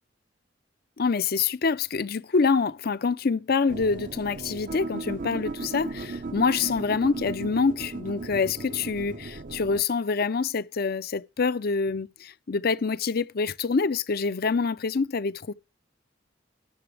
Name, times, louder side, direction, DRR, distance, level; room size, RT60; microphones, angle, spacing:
voice 1, 1.0-15.5, left 4 dB, 55° left, 0.6 m, -26 dB
sound 1, 3.7-9.8, right 3 dB, 45° right, 0.6 m, -36 dB
19.5 x 6.8 x 3.4 m
head